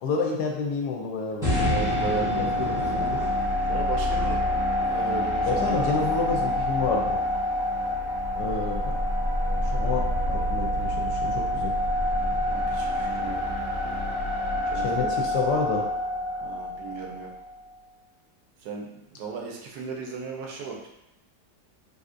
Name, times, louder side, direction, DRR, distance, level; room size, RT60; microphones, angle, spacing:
voice 1, 0.0-1.5 2.2-3.2 5.4-7.2 8.4-9.0 9.6-11.8 14.7-15.8, left 4 dB, 75° left, 1 dB, 1.1 m, -29 dB
sound 1, 1.4-17.6, left 1 dB, 5° right, 0.7 m, -27 dB
voice 2, 1.7-2.5 3.7-4.4 4.9-6.0 12.4-13.4 14.7-15.3 16.4-17.3 18.6-20.9, right 5 dB, 75° right, 0 dB, 1.1 m, -35 dB
sound 2, 8.1-13.6 14.1-14.2, right 1 dB, 60° left, 0.6 m, -30 dB
3.5 x 2.7 x 2.5 m, 0.86 s
omnidirectional pair, 1.8 m